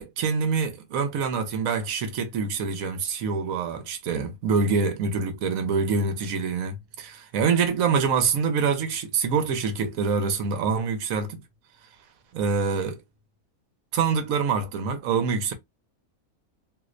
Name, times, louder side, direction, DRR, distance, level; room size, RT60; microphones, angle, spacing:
voice 1, 0.0-11.4 12.3-13.0 13.9-15.5, right 5 dB, 70° right, 1.1 m, -25 dB
3.0 x 2.9 x 2.5 m
omnidirectional pair, 1.6 m